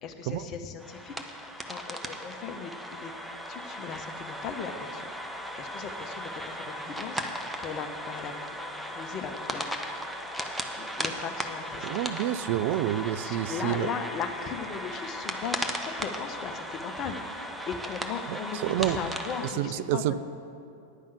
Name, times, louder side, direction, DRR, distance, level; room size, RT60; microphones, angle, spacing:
voice 1, 0.0-3.1 3.5-8.6 8.9-9.6 10.4-12.4 13.2-20.1, left 6 dB, 35° left, 6 dB, 0.8 m, -38 dB
sound 1, 0.8-19.5, equal, ahead, 0.7 m, -36 dB
voice 2, 11.8-13.9 18.3-18.4 18.6-19.0 19.6-20.1, right 13 dB, 50° right, 14 dB, 0.3 m, -28 dB
9.9 x 5.5 x 8.0 m, 2.6 s
figure-of-eight pair, 90°, 0 cm